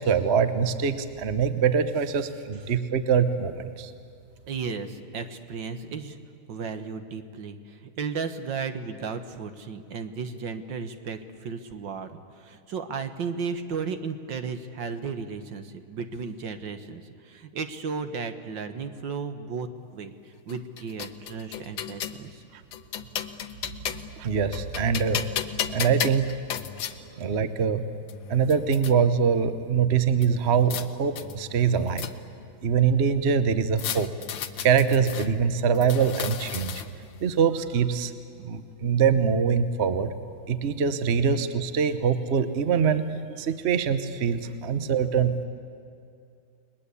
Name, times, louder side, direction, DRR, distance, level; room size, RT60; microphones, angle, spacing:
voice 1, 0.0-3.9 24.2-25.2 25.7-26.2 27.2-27.8 28.3-32.1 32.6-34.1 34.6-36.7 37.2-38.1 38.4-40.1 40.5-43.1 43.4-45.4, right 6 dB, 45° right, 10 dB, 0.9 m, -23 dB
voice 2, 4.5-6.2 6.5-22.4, right 5 dB, 65° right, 8 dB, 1.9 m, -34 dB
sound 1, 20.5-22.2 22.7-24.2 24.5-27.0 27.7-27.8 28.1-28.9 30.2-30.9 31.2-32.4 33.8-35.3 35.8-37.1, left 9 dB, 75° left, 1.7 m, -34 dB
30.0 x 20.5 x 8.4 m, 2.5 s
omnidirectional pair, 2.2 m